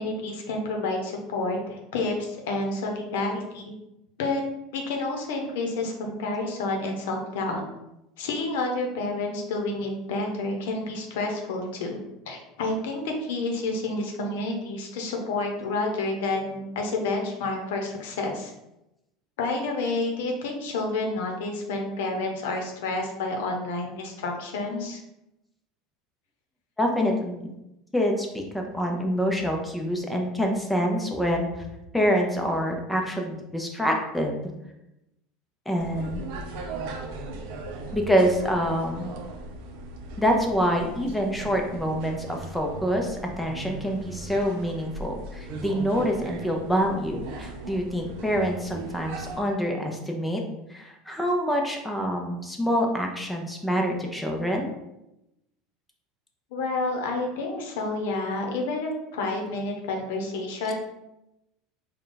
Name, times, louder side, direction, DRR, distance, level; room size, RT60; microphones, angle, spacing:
voice 1, 0.0-3.7 4.2-4.4 4.7-7.6 8.2-12.0 12.3-18.5 19.4-25.0 56.5-60.7, left 2 dB, 85° left, 2 dB, 0.8 m, -29 dB
voice 2, 26.8-27.5 27.9-31.5 31.9-34.3 35.7-36.2 37.9-39.1 40.2-50.4 50.7-54.7, equal, 5° left, 1 dB, 0.6 m, -26 dB
sound 1, 35.8-49.4, right 2 dB, 65° right, 0.5 m, -38 dB
3.8 x 2.3 x 3.8 m, 0.90 s
supercardioid pair, 130°, 0 cm